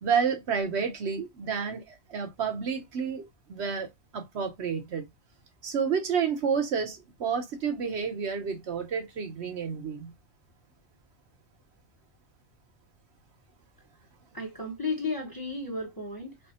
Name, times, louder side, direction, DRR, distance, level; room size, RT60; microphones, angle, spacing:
voice 1, 0.0-5.1 5.6-10.1, right 6 dB, 65° right, 1.2 m, -30 dB
voice 2, 14.3-16.5, left 3 dB, 20° left, 1.0 m, -34 dB
3.4 x 2.0 x 4.3 m
omnidirectional pair, 1.3 m